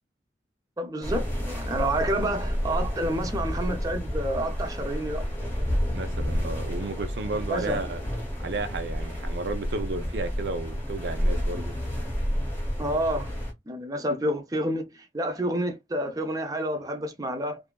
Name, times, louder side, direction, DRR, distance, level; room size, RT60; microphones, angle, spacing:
voice 1, 0.8-5.2 7.5-7.8 12.8-13.3 13.7-17.6, right 1 dB, 20° right, 0.5 m, -29 dB
sound 1, 1.0-13.5, equal, 10° left, 0.9 m, -30 dB
voice 2, 5.9-8.0 8.4-11.8, right 3 dB, 75° right, 0.5 m, -33 dB
2.6 x 2.3 x 2.2 m
head